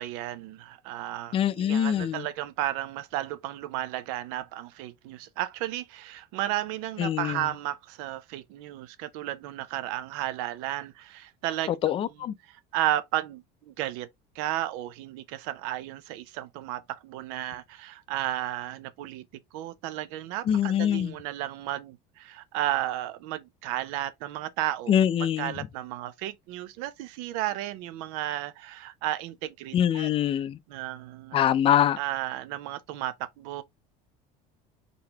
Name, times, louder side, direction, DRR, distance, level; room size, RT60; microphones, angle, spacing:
voice 1, 0.0-11.7 12.5-14.1 14.3-19.2 19.5-24.9 25.4-30.1 30.7-31.4 32.0-33.6, right 14 dB, 80° right, 0.6 m, -33 dB
voice 2, 1.3-2.3 7.0-7.4 11.8-12.3 20.5-21.1 24.9-25.5 29.7-30.6 31.3-32.0, left 10 dB, 30° left, 0.4 m, -24 dB
3.9 x 3.6 x 2.9 m
cardioid pair, 150°, 18 cm